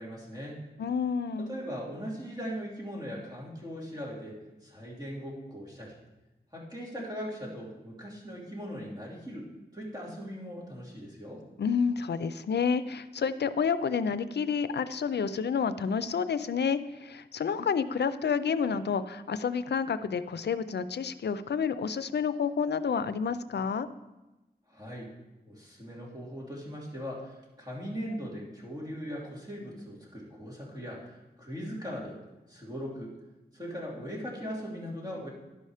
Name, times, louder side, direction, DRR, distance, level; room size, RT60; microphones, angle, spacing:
voice 1, 0.0-0.6 1.4-6.0 6.5-9.5 9.7-11.4 24.7-25.1 25.4-32.2 32.5-33.2 33.5-35.3, equal, 25° right, -4 dB, 2.9 m, -39 dB
voice 2, 0.8-1.6 11.6-23.9, left 6 dB, 90° left, 14 dB, 0.4 m, -29 dB
11.5 x 5.5 x 4.9 m, 1.0 s
wide cardioid pair, 50°, 17 cm